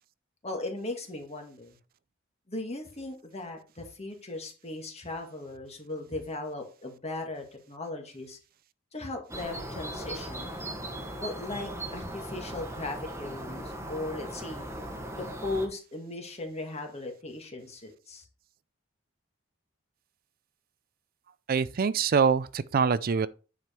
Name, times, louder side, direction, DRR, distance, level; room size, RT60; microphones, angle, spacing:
voice 1, 0.4-1.8 2.5-8.4 8.9-10.5 11.2-14.7 15.1-18.3, left 2 dB, 30° left, 2.0 m, -37 dB
sound 1, 9.3-15.7, right 1 dB, 15° right, 1.4 m, -38 dB
voice 2, 21.5-23.3, right 6 dB, 45° right, 0.4 m, -24 dB
9.5 x 5.0 x 4.4 m
head